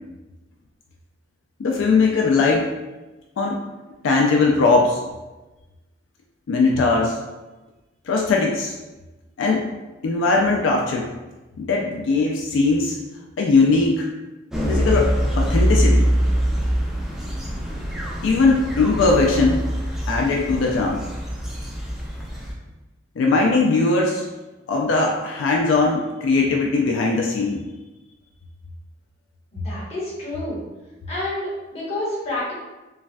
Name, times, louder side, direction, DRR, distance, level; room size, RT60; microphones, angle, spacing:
voice 1, 1.6-2.7 3.4-3.6 4.0-5.0 6.5-7.2 8.1-8.7 9.4-9.6 10.0-11.1 11.6-13.0 13.4-14.1 14.7-15.1 15.4-16.0 18.2-19.6 20.1-21.0 23.2-24.3 24.7-27.6, left 3 dB, 85° left, 0 dB, 0.3 m, -19 dB
sound 1, 14.5-22.5, equal, ahead, 0.3 m, -23 dB
voice 2, 29.5-30.6 31.1-32.5, left 1 dB, 35° left, -7 dB, 1.0 m, -29 dB
3.1 x 2.2 x 2.5 m, 1.1 s
head